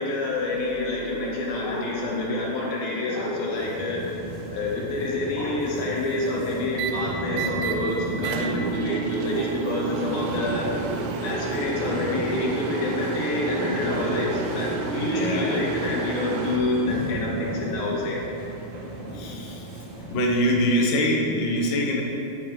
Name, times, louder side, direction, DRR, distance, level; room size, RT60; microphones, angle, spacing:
voice 1, 0.0-4.0 4.5-10.7 11.2-18.2, left 2 dB, 80° left, -4 dB, 3.6 m, -27 dB
sound 1, 3.5-20.4, right 1 dB, 55° right, 3.2 m, -35 dB
sound 2, 5.0-5.4 6.7-6.9 7.3-7.8 8.2-16.6, right 4 dB, 75° right, 2.2 m, -30 dB
voice 2, 15.1-15.6 19.1-19.6 20.1-22.0, equal, 55° left, -2 dB, 1.2 m, -24 dB
14.5 x 6.0 x 4.9 m, 3.0 s
omnidirectional pair, 4.1 m